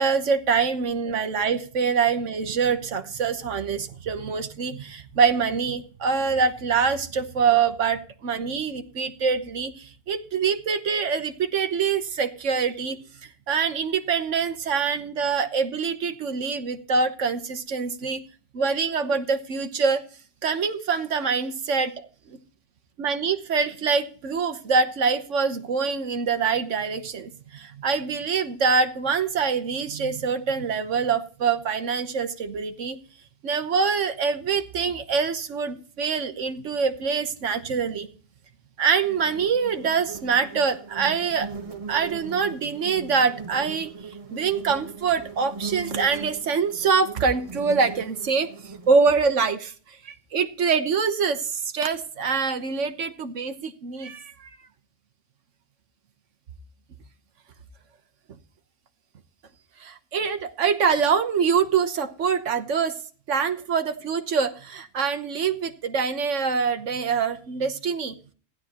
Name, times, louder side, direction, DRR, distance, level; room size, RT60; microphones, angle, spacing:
voice 1, 0.0-13.0 13.5-18.2 18.5-20.0 20.4-22.1 23.0-33.0 33.4-38.1 38.8-41.5 41.9-43.9 44.3-48.5 48.9-49.7 50.0-54.5 59.8-63.0 63.3-68.1, right 5 dB, 85° right, 9 dB, 1.4 m, -25 dB
sound 1, 39.0-49.0, right 5 dB, 30° right, 1.2 m, -39 dB
16.0 x 11.5 x 2.9 m, 0.40 s
omnidirectional pair, 1.2 m